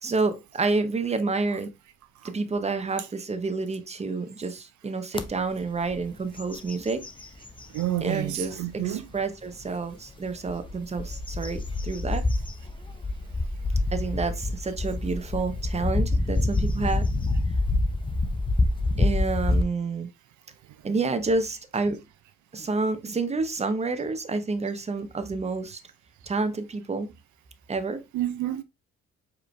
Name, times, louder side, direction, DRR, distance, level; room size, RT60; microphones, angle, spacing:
voice 1, 0.0-1.7 2.2-7.0 8.0-12.2 13.9-17.0 19.0-20.1 20.8-22.0 22.5-25.8 26.3-27.1 27.7-28.0, right 3 dB, 20° right, 0.8 m, -29 dB
sound 1, 5.1-5.3 5.8-6.0 6.4-7.9 8.5-8.6 10.3-19.6, left 2 dB, 15° left, 0.6 m, -27 dB
voice 2, 7.7-9.1 16.6-16.7 20.9-21.0 28.1-28.6, right 13 dB, 75° right, 0.5 m, -29 dB
4.7 x 3.2 x 3.1 m
cardioid pair, 90°, 30 cm